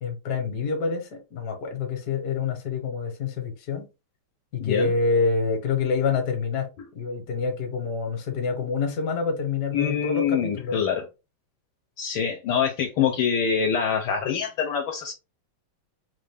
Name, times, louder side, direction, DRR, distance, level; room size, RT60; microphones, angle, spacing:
voice 1, 0.0-3.9 4.5-10.8, left 4 dB, 55° left, 1.4 m, -27 dB
voice 2, 4.6-4.9 9.7-11.0 12.0-15.1, left 7 dB, 70° left, 1.4 m, -25 dB
4.0 x 2.5 x 3.3 m
omnidirectional pair, 2.3 m